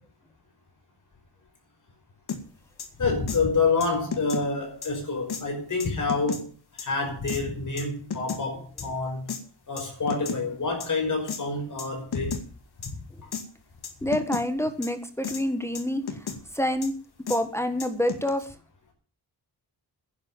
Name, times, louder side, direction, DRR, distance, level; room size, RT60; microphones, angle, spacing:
sound 1, 2.3-2.4 2.8-2.9 3.3-3.4 3.8-4.4 4.8-4.9 5.3-5.4 5.8-6.4 6.8-6.9 7.3-7.4 7.8-8.4 8.8-8.9 9.3-9.4 9.8-10.4 10.8-10.9 11.3-11.4 11.8-11.9 12.1-12.4 12.8-12.9 13.3-13.4 13.8-14.4 14.8-14.9 15.2-15.4 15.7-16.4 16.8-16.9 17.3-17.4 17.8-18.3, left 6 dB, 65° left, 2.2 m, -33 dB
voice 1, 3.0-6.5 6.8-9.3 9.7-12.4 14.0-14.1, left 4 dB, 45° left, 2 dB, 5.4 m, -27 dB
voice 2, 14.0-16.0 16.5-16.9 17.3-18.4, left 1 dB, 5° left, 9 dB, 1.4 m, -27 dB
11.0 x 10.5 x 7.3 m, 0.40 s
wide cardioid pair, 180°, 41 cm